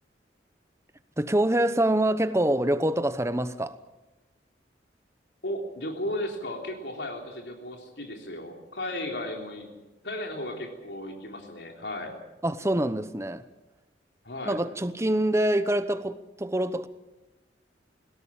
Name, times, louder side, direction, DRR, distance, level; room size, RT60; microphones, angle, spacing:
voice 1, 1.2-3.8 12.4-13.4 14.5-16.9, right 1 dB, 15° right, 0.9 m, -25 dB
voice 2, 5.4-9.7 10.0-12.2 14.2-14.6, left 1 dB, 75° left, 3.4 m, -35 dB
20.5 x 17.0 x 8.9 m
head